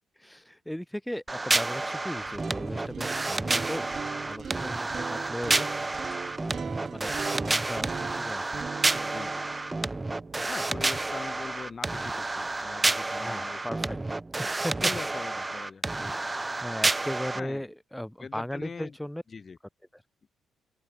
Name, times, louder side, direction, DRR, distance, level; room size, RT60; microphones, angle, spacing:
voice 1, 0.2-3.9 4.2-5.7 6.9-9.1 13.2-14.0 14.4-14.7 16.6-19.2, equal, 5° left, 1.8 m, -37 dB
sound 1, 1.3-17.4, right 2 dB, 20° right, 0.5 m, -30 dB
sound 2, 2.2-12.2, right 6 dB, 45° right, 2.4 m, -40 dB
voice 2, 9.0-9.4 10.5-14.0 14.8-16.2 17.3-17.7 18.2-19.0 19.3-19.6, left 5 dB, 35° left, 1.3 m, -42 dB
open air
cardioid pair, 90°, 0 cm